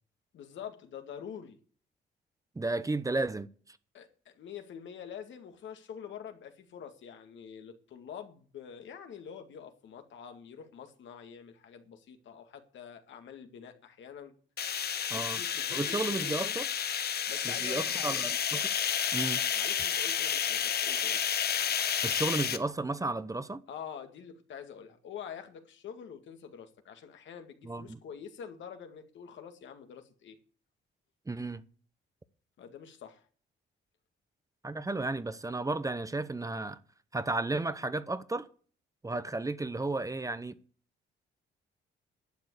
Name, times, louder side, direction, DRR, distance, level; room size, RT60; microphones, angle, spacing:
voice 1, 0.3-1.6 3.9-14.4 15.1-16.6 17.3-18.2 19.5-21.3 23.7-30.4 32.6-33.2, left 8 dB, 70° left, 2.1 m, -46 dB
voice 2, 2.6-3.8 15.1-15.4 15.7-16.7 17.4-18.7 19.1-19.4 22.0-23.6 27.6-28.0 31.3-31.6 34.6-36.8 37.1-38.5 39.0-40.6, right 2 dB, 15° right, 0.8 m, -33 dB
sound 1, 14.6-22.6, left 8 dB, 55° left, 1.1 m, -31 dB
11.5 x 7.4 x 8.2 m
cardioid pair, 90°, 20 cm